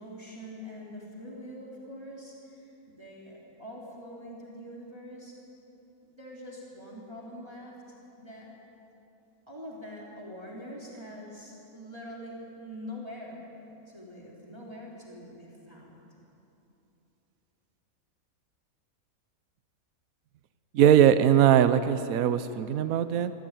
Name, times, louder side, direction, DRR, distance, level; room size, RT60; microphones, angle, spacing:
voice 1, 0.0-5.4 6.2-7.7 8.2-8.5 9.5-13.4 13.9-16.1, equal, 20° right, -4 dB, 3.7 m, -44 dB
voice 2, 20.7-23.3, right 10 dB, 80° right, 12 dB, 1.2 m, -21 dB
25.0 x 14.5 x 9.2 m, 2.9 s
omnidirectional pair, 1.5 m